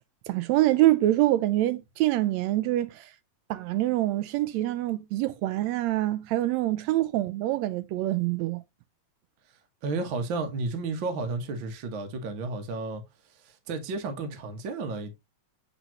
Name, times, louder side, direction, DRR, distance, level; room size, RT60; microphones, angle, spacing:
voice 1, 0.3-3.1 3.5-8.6, right 15 dB, 80° right, 1.8 m, -25 dB
voice 2, 9.8-13.0 13.4-15.1, right 3 dB, 50° right, 1.7 m, -32 dB
8.2 x 3.8 x 3.0 m
omnidirectional pair, 3.3 m